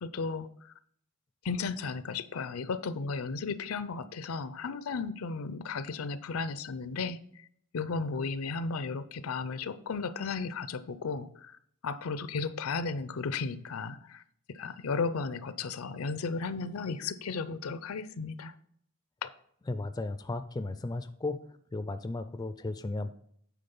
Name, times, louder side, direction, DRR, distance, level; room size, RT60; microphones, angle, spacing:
voice 1, 0.0-0.7 1.4-7.4 7.7-11.6 11.8-14.2 14.5-18.5 19.2-19.3, left 4 dB, 80° left, 14 dB, 0.5 m, -34 dB
voice 2, 19.7-21.4 21.7-23.1, left 2 dB, 20° left, 11 dB, 0.3 m, -35 dB
9.4 x 3.7 x 5.3 m, 0.66 s
head